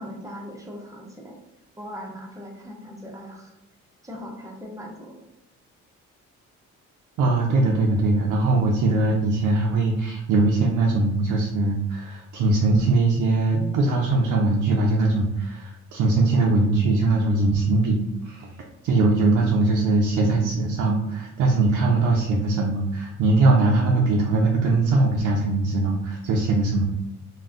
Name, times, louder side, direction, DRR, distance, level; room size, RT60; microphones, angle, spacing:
voice 1, 0.0-1.4 1.8-3.5 4.0-5.2, equal, 10° right, -1 dB, 0.7 m, -39 dB
voice 2, 7.2-18.5 18.8-26.8, right 2 dB, 85° right, -2 dB, 0.5 m, -21 dB
2.4 x 2.1 x 3.6 m, 0.95 s
cardioid pair, 90°, 30 cm